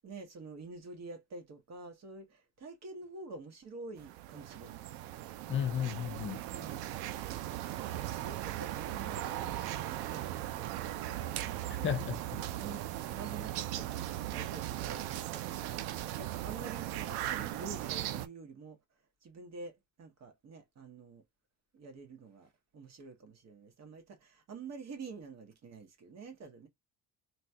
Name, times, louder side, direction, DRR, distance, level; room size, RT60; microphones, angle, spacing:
voice 1, 0.0-4.9 6.5-6.9 7.9-11.4 12.3-14.0 14.3-15.9 16.1-18.8 19.2-21.2 21.7-26.7, right 3 dB, 45° right, 1.3 m, -48 dB
sound 1, 4.0-18.3, right 13 dB, 80° right, 0.5 m, -38 dB
voice 2, 5.5-6.4 11.7-12.2, left 9 dB, 35° left, 0.5 m, -33 dB
3.0 x 2.3 x 2.7 m
cardioid pair, 100°, 36 cm